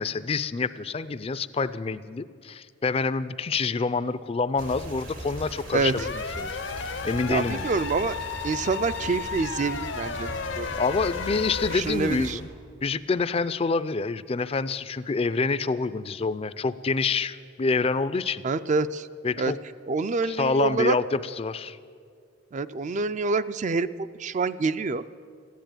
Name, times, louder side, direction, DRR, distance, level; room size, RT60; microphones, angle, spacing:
voice 1, 0.0-7.7 10.8-12.5 12.8-18.4 19.2-19.6 20.3-21.8, left 4 dB, 30° left, 15 dB, 0.4 m, -27 dB
sound 1, 4.6-12.3, right 1 dB, 90° right, 3.4 m, -39 dB
voice 2, 5.7-6.1 7.3-8.2 8.4-10.7 11.7-12.4 18.4-19.1 19.4-19.5 19.9-21.0 22.5-23.9 24.2-25.0, right 4 dB, 40° right, 14 dB, 0.4 m, -26 dB
air raid.R, 6.0-11.8, left 6 dB, 65° left, 0.7 m, -34 dB
14.5 x 10.5 x 9.0 m, 2.2 s
head